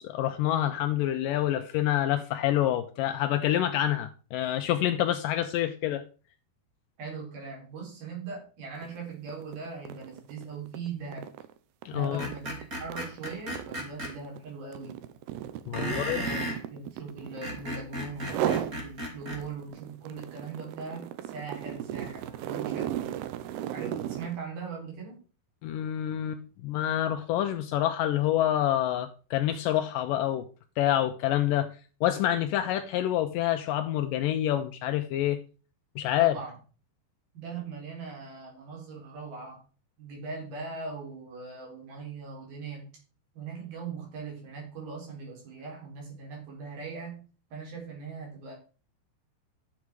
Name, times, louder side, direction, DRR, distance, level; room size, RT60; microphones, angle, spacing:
voice 1, 0.0-6.1 11.9-12.3 15.7-16.2 25.6-30.5 30.8-31.7 32.0-35.4 36.0-36.3, left 12 dB, 85° left, 1.9 m, -27 dB
voice 2, 7.0-11.3 11.9-15.0 15.7-22.9 23.7-25.2 36.2-36.6 37.3-39.6 40.0-42.9 43.3-48.5, right 4 dB, 65° right, 6.2 m, -40 dB
sound 1, 8.8-9.0 9.3-17.8 18.2-18.8 19.2-24.4, right 11 dB, 80° right, 2.8 m, -35 dB
Screech, 12.2-14.1 15.7-16.6 17.2-19.4, equal, 25° right, 2.8 m, -35 dB
11.5 x 7.2 x 4.8 m
omnidirectional pair, 4.6 m